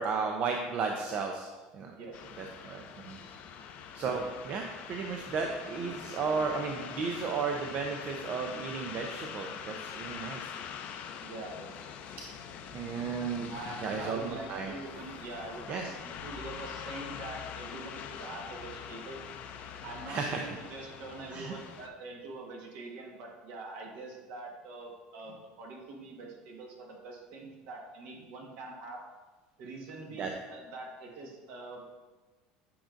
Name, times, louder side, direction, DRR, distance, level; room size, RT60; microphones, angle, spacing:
voice 1, 0.0-1.5 1.7-1.9 2.4-3.2 3.9-10.5 12.7-13.5 13.8-14.7 15.7-15.9 20.1-20.4 21.3-21.5 30.2-30.3, right 5 dB, 45° right, 3 dB, 0.6 m, -34 dB
voice 2, 1.9-2.3 3.5-3.6 5.8-5.9 11.2-11.9 13.4-19.2 19.8-29.0 29.6-31.9, right 2 dB, 65° right, 0 dB, 1.5 m, -44 dB
sound 1, 2.1-21.9, left 8 dB, 50° left, 0.5 m, -44 dB
8.6 x 5.1 x 2.5 m, 1.2 s
supercardioid pair, 120°, 3 cm